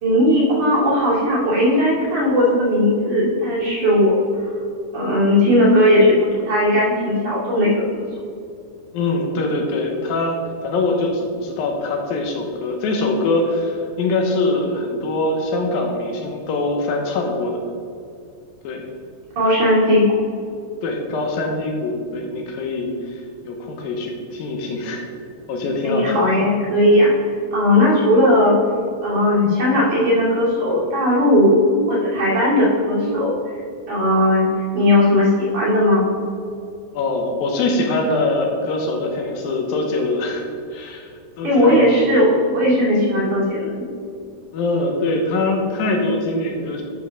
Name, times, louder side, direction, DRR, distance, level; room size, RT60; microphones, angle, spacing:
voice 1, 0.0-4.1 4.9-8.0 19.4-20.1 25.8-27.1 27.5-28.6 29.0-31.6 31.9-33.3 33.9-34.5 34.7-36.0 41.4-43.7, left 1 dB, 45° right, -6 dB, 3.5 m, -17 dB
voice 2, 8.9-17.6 18.6-18.8 20.8-25.1 25.5-26.3 36.9-40.4 40.7-41.1 41.4-41.9 44.5-46.8, left 2 dB, 75° left, 2 dB, 2.7 m, -23 dB
11.5 x 4.8 x 6.3 m, 2.4 s
omnidirectional pair, 4.3 m